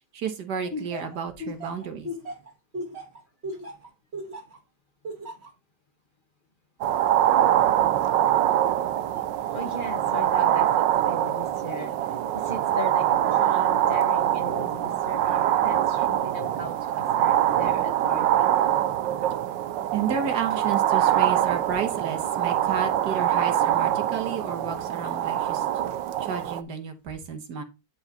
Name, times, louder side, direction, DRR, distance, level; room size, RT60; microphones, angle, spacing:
voice 1, 0.1-2.1 19.9-25.7 26.2-27.6, right 7 dB, 70° right, 7 dB, 1.8 m, -31 dB
Laughter, 0.7-4.6 5.0-5.5, left 1 dB, 35° right, 2.1 m, -35 dB
sound 1, 6.8-26.6, right 11 dB, 85° right, 1.4 m, -24 dB
voice 2, 9.5-11.9 12.3-18.5, left 1 dB, 30° left, 4 dB, 1.6 m, -37 dB
10.5 x 4.8 x 4.1 m, 0.25 s
omnidirectional pair, 1.9 m